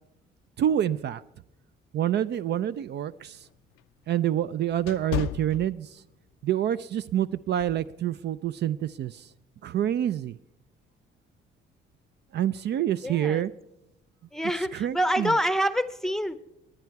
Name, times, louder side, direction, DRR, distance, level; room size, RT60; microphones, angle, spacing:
voice 1, 0.6-1.2 1.9-3.5 4.1-6.0 6.4-9.3 9.6-10.4 12.3-13.5 14.7-15.3, right 11 dB, 55° right, 15 dB, 0.4 m, -27 dB
sound 1, 2.6-6.3 6.7-7.0 7.6-7.9, left 12 dB, 90° left, 0.5 m, -36 dB
voice 2, 13.0-13.4 14.3-16.4, equal, ahead, 14 dB, 0.7 m, -26 dB
20.0 x 9.7 x 4.6 m, 0.86 s
cardioid pair, 95°, 21 cm